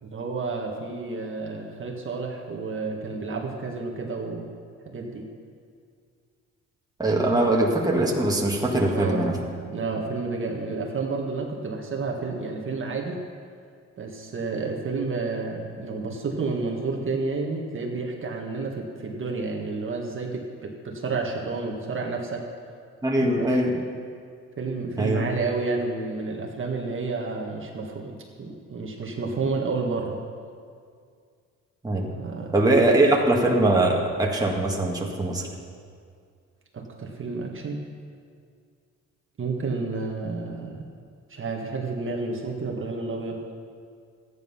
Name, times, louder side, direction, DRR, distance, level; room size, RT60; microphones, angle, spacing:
voice 1, 0.0-4.5 4.8-5.3 8.9-9.3 9.7-13.2 14.0-22.5 23.2-23.8 24.6-30.2 32.1-32.8 36.7-37.8 39.4-40.8 41.3-43.4, right 3 dB, 40° right, 0 dB, 1.7 m, -30 dB
voice 2, 7.0-9.4 23.0-23.7 25.0-25.3 31.8-32.1 32.5-35.5, right 1 dB, 10° right, -1 dB, 1.8 m, -22 dB
13.5 x 9.7 x 5.6 m, 2.2 s
cardioid pair, 90°, 30 cm